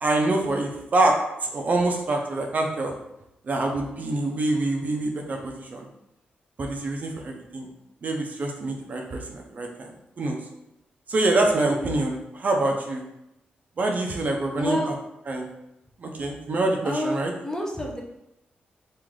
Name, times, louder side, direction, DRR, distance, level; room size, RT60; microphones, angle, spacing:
voice 1, 0.0-1.2 1.4-2.9 3.4-5.9 6.6-7.7 8.0-10.4 11.1-13.0 13.8-14.8 15.3-15.5 16.0-17.3, right 2 dB, 50° right, 1 dB, 0.6 m, -25 dB
voice 2, 14.5-14.9 16.8-18.0, left 1 dB, 15° left, 0 dB, 0.6 m, -29 dB
3.1 x 2.5 x 3.8 m, 0.86 s
cardioid pair, 100°, 3 cm